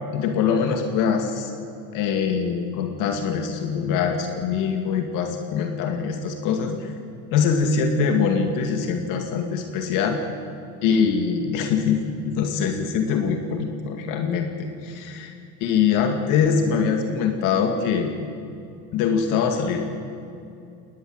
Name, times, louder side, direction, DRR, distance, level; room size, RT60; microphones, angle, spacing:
voice 1, 0.1-1.5 1.9-6.9 7.3-10.2 10.8-15.3 15.6-18.1 18.9-19.8, left 6 dB, 80° left, 4 dB, 2.4 m, -23 dB
21.5 x 19.5 x 8.1 m, 2.6 s
cardioid pair, 120°, 31 cm